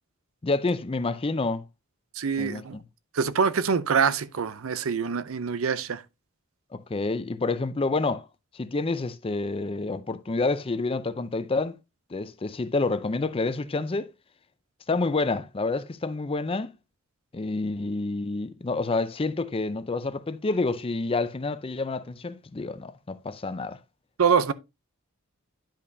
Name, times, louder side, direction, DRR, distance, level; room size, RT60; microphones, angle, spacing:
voice 1, 0.4-1.6 2.4-2.8 6.7-8.3 8.5-11.8 12.1-14.1 14.9-16.7 17.3-23.8, left 3 dB, 25° left, 0.5 m, -28 dB
voice 2, 2.2-2.8 3.1-6.0 24.2-24.5, right 6 dB, 70° right, 0.5 m, -25 dB
10.0 x 5.4 x 2.6 m
head